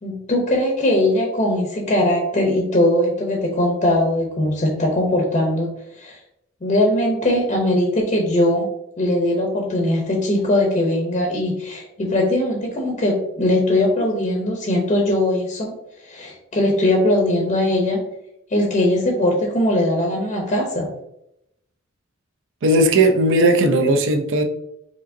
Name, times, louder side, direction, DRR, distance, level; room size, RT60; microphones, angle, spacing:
voice 1, 0.0-6.2 6.6-8.7 9.0-15.7 16.0-18.0 18.5-20.9, left 1 dB, 35° left, 0 dB, 0.7 m, -20 dB
voice 2, 22.6-24.4, right 1 dB, 60° right, 4 dB, 0.5 m, -16 dB
5.0 x 2.8 x 2.6 m, 0.80 s
head